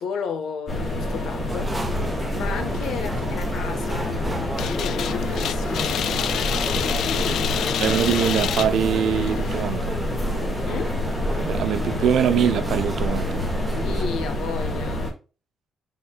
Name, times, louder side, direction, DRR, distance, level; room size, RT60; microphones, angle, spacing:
voice 1, 0.0-1.8 2.0-6.0 7.1-7.8 10.6-11.0 13.6-15.1, left 6 dB, 85° left, 1.3 m, -33 dB
sound 1, 0.7-15.1, left 1 dB, 30° left, 2.9 m, -27 dB
sound 2, 1.5-14.0, right 2 dB, 15° right, 1.0 m, -34 dB
sound 3, 4.6-9.6, left 9 dB, 70° left, 0.4 m, -28 dB
voice 2, 7.8-10.0 11.4-13.4, right 9 dB, 80° right, 0.8 m, -23 dB
11.0 x 4.2 x 2.4 m
cardioid pair, 145°, 0 cm